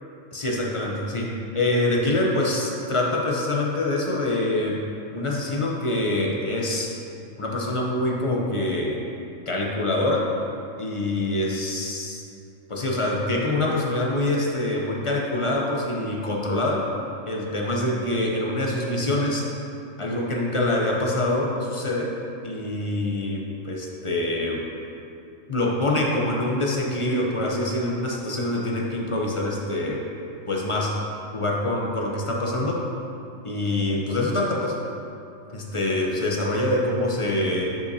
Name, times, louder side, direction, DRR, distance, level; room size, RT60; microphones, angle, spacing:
voice 1, 0.3-4.8 5.1-6.9 7.4-9.0 9.5-10.3 10.8-12.3 12.7-16.8 17.3-19.5 20.0-22.1 22.4-24.6 25.5-30.0 30.5-30.9 31.3-32.8 33.4-34.7 35.5-37.6, left 1 dB, 30° left, -2 dB, 0.7 m, -25 dB
10.5 x 5.6 x 2.8 m, 2.7 s
omnidirectional pair, 1.3 m